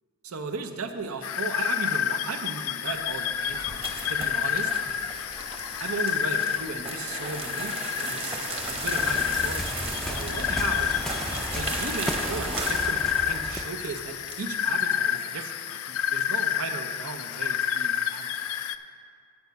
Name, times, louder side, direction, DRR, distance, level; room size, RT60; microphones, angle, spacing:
voice 1, 0.2-4.7 5.8-11.0 11.6-18.5, right 4 dB, 75° right, 7 dB, 0.7 m, -36 dB
sound 1, 1.2-18.7, left 9 dB, 75° left, 0.4 m, -29 dB
sound 2, 3.0-14.7, right 3 dB, 25° right, 1.0 m, -36 dB
Waves surf, 8.6-13.8, equal, ahead, 0.4 m, -35 dB
8.7 x 8.1 x 5.3 m, 2.2 s
head